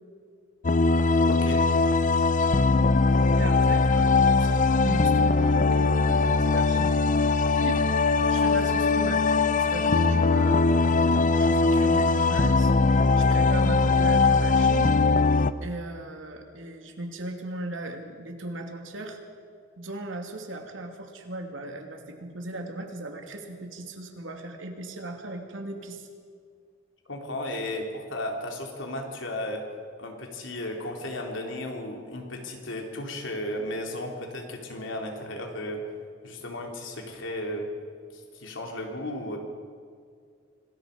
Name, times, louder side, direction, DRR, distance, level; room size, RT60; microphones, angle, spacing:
sound 1, 0.6-15.5, left 3 dB, 40° left, 0.7 m, -21 dB
voice 1, 1.3-1.6 27.1-29.6 30.0-35.8 36.2-37.7 38.1-39.4, left 1 dB, 75° left, 1 dB, 3.5 m, -34 dB
voice 2, 3.4-7.0 7.5-9.4 9.7-11.0 11.3-15.0 15.6-19.2 19.8-26.1, right 2 dB, 75° right, 3 dB, 2.8 m, -38 dB
26.5 x 20.5 x 5.3 m, 2.2 s
head